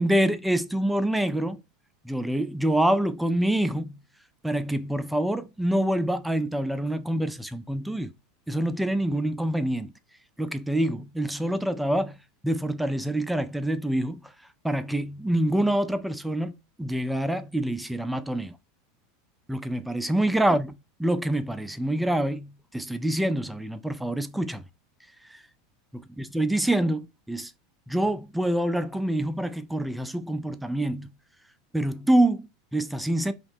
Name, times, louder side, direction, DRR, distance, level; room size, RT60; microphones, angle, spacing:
voice 1, 0.0-1.6 2.0-4.0 4.4-8.1 8.5-9.9 10.4-12.2 12.4-14.2 14.6-16.5 16.8-18.5 19.5-20.7 21.0-24.6 25.9-27.5 27.9-31.1 31.7-33.3, right 1 dB, 5° right, 0.3 m, -26 dB
2.8 x 2.0 x 3.4 m
hypercardioid pair, 90°, 0 cm